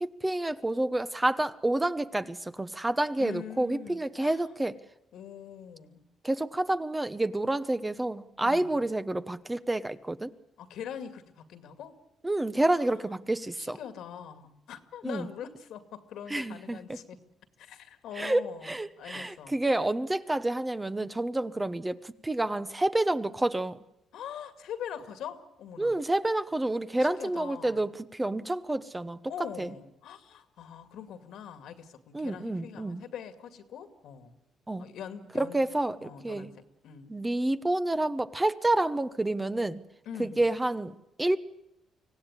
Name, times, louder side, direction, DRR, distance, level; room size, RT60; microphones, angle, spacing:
voice 1, 0.0-4.7 6.2-10.3 12.2-13.8 15.0-15.3 16.3-17.0 18.2-23.8 25.8-29.2 29.6-29.7 32.1-33.0 34.7-34.9 35.3-36.5 37.1-39.8 40.2-41.4, right 1 dB, 15° right, 12 dB, 1.0 m, -29 dB
voice 2, 3.2-4.6 5.1-6.0 8.4-8.8 10.6-12.0 12.7-13.1 13.6-17.2 17.6-19.6 24.1-26.0 27.0-27.8 29.3-34.3 34.8-35.7 36.0-37.1 40.1-40.5, left 8 dB, 80° left, 9 dB, 2.2 m, -43 dB
25.0 x 17.0 x 9.8 m, 0.85 s
cardioid pair, 90°, 0 cm